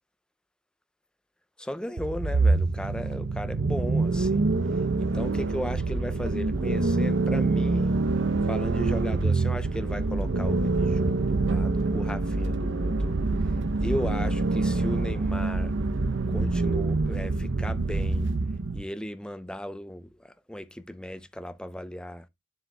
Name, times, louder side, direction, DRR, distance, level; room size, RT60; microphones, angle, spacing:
voice 1, 1.6-4.5 5.0-7.9 8.4-13.2 13.8-15.7 16.3-18.3 18.7-22.3, equal, 5° left, 0.5 m, -36 dB
sound 1, 2.0-18.8, right 3 dB, 75° right, 0.7 m, -26 dB
9.6 x 7.5 x 2.2 m
head